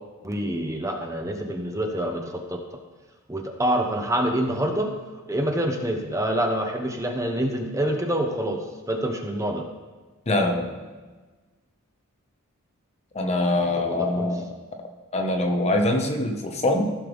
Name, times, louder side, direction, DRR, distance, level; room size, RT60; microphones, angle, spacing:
voice 1, 0.2-2.6 3.3-4.9 5.3-9.6 13.8-14.3, right 1 dB, 15° right, 3 dB, 0.8 m, -26 dB
voice 2, 10.3-10.8 13.1-14.5 15.1-16.9, left 1 dB, 30° left, 4 dB, 0.9 m, -23 dB
15.0 x 6.6 x 3.5 m, 1.3 s
head